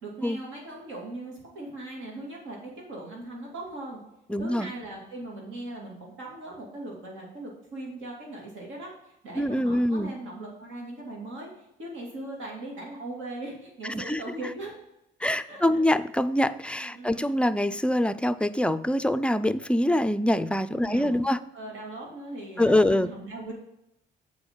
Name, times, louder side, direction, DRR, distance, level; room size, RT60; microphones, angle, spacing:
voice 1, 0.0-4.0 4.4-14.7 15.3-15.8 16.8-17.3 20.7-23.5, right 2 dB, 80° right, -2 dB, 2.4 m, -39 dB
voice 2, 4.3-4.7 9.3-10.1 13.9-14.2 15.2-21.4 22.6-23.1, left 1 dB, 5° left, 13 dB, 0.4 m, -24 dB
8.0 x 4.9 x 5.2 m, 0.82 s
cardioid pair, 90°, 20 cm